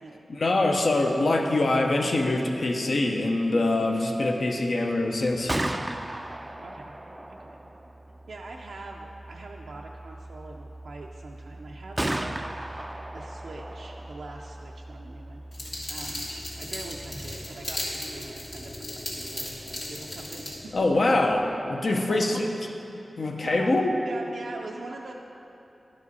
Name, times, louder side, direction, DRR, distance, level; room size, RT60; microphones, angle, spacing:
voice 1, 0.3-5.6 20.7-22.4 23.2-23.9, left 2 dB, 60° left, 2 dB, 0.7 m, -24 dB
Gunshot gunfire, 5.2-19.1, right 1 dB, 20° right, 0.3 m, -37 dB
voice 2, 6.6-6.9 7.3-7.6 8.3-12.5 13.1-15.4 15.9-16.3 16.6-20.7 21.2-21.3 21.9-22.4 23.3-23.7 24.0-25.1, right 3 dB, 85° right, -1 dB, 0.4 m, -42 dB
sound 1, 15.4-21.5, left 1 dB, 25° left, 0.7 m, -47 dB
sound 2, 15.5-20.5, left 1 dB, 75° left, 1.8 m, -36 dB
11.5 x 4.9 x 4.1 m, 2.9 s
wide cardioid pair, 80°, 0 cm